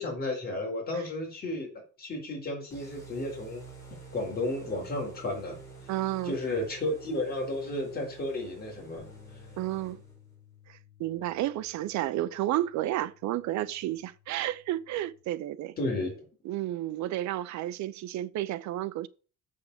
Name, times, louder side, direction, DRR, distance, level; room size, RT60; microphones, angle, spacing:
voice 1, 0.0-3.6 4.1-5.6 6.2-9.1 15.8-16.2, left 2 dB, 35° left, 4.3 m, -33 dB
sound 1, 2.7-10.3, right 4 dB, 10° left, 4.8 m, -49 dB
voice 2, 5.9-6.4 9.6-10.0 10.7-15.8 16.4-19.1, right 14 dB, 75° right, 0.7 m, -31 dB
sound 2, 9.0-15.2, left 9 dB, 15° right, 4.2 m, -57 dB
7.0 x 6.7 x 6.7 m
cardioid pair, 160°, 29 cm